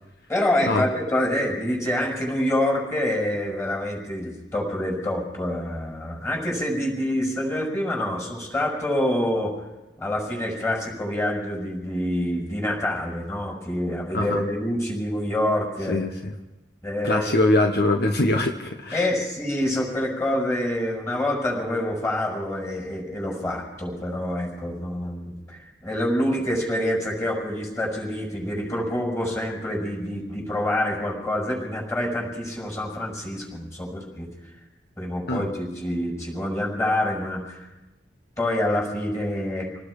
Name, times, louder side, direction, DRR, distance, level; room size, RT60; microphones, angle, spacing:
voice 1, 0.3-9.5 10.0-16.0 16.8-17.3 18.9-34.3 35.0-37.7 38.4-39.7, left 1 dB, 15° left, -1 dB, 6.5 m, -26 dB
voice 2, 14.1-14.4 15.9-16.3 17.0-19.0 35.3-35.5, left 2 dB, 65° left, 4 dB, 1.3 m, -22 dB
27.5 x 19.0 x 5.0 m, 1.0 s
head